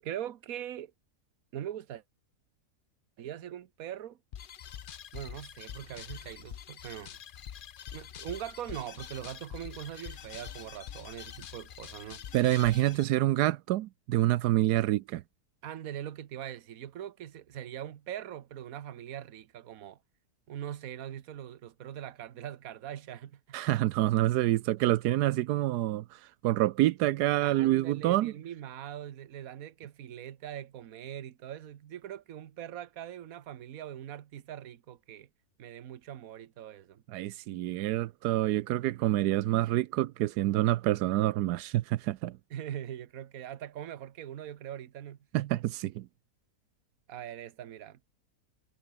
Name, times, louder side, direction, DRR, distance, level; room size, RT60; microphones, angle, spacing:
voice 1, 0.0-0.9 1.5-2.0 3.2-4.2 5.1-7.2 7.9-12.2 15.6-20.0 20.5-23.6 27.4-35.3 35.6-37.0 42.5-45.2 47.1-48.0, right 11 dB, 65° right, 1.4 m, -42 dB
sound 1, 4.3-13.0, left 9 dB, 65° left, 0.5 m, -45 dB
voice 2, 12.3-15.2 23.5-28.3 37.1-42.4 45.3-46.1, right 15 dB, 85° right, 1.2 m, -27 dB
omnidirectional pair, 1.7 m